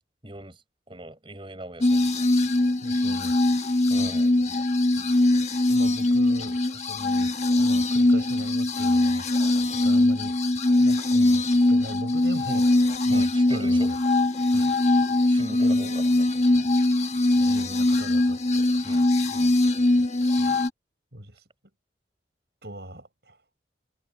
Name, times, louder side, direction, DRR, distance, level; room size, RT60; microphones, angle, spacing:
voice 1, 0.2-0.6 0.9-2.2 3.9-4.3 9.6-9.7 13.1-13.9 14.5-14.7 15.3-16.7 18.8-19.5 20.4-20.6, right 1 dB, 30° right, 5.1 m, -41 dB
sound 1, 1.8-20.7, left 2 dB, 40° left, 1.3 m, -22 dB
voice 2, 2.8-4.2 4.5-4.6 4.9-5.1 5.7-14.0 14.5-14.7 15.1-16.0 17.3-18.8 21.1-21.5 22.6-23.4, right 1 dB, 65° right, 7.8 m, -40 dB
head